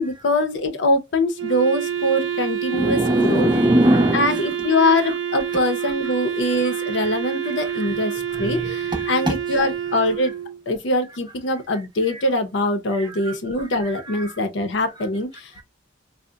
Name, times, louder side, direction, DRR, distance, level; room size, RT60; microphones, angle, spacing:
voice 1, 0.0-3.5 4.1-10.3 10.7-15.5, left 1 dB, 65° left, 0.6 m, -23 dB
Wind instrument woodwind instrument, 1.4-10.6, right 9 dB, 65° right, 0.4 m, -27 dB
voice 2, 2.7-4.4 5.5-6.1 6.6-6.8 7.3-7.9 8.3-9.4 12.1-12.2 12.9-14.4 15.6-15.7, right 1 dB, 25° right, 0.6 m, -23 dB
3.7 x 2.0 x 2.2 m
head